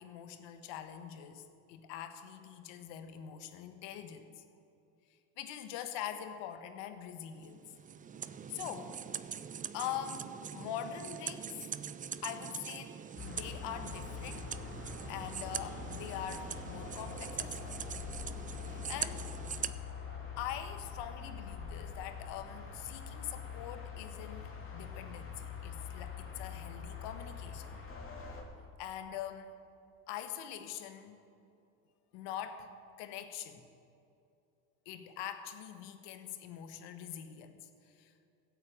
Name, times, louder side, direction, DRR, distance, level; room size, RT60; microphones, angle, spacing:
voice 1, 0.0-4.4 5.4-7.6 8.5-9.0 9.7-11.6 12.2-12.9 13.2-14.5 15.1-17.8 18.6-19.3 20.4-27.8 28.8-29.5 30.1-31.2 32.1-32.7 33.0-33.7 34.8-37.7 38.0-38.1, left 10 dB, 65° left, 8 dB, 1.5 m, -43 dB
sound 1, 7.4-19.7, right 8 dB, 20° right, 0.4 m, -43 dB
sound 2, 13.2-28.4, left 6 dB, 30° left, 2.8 m, -44 dB
15.5 x 8.6 x 8.0 m, 2.6 s
supercardioid pair, 90°, 45 cm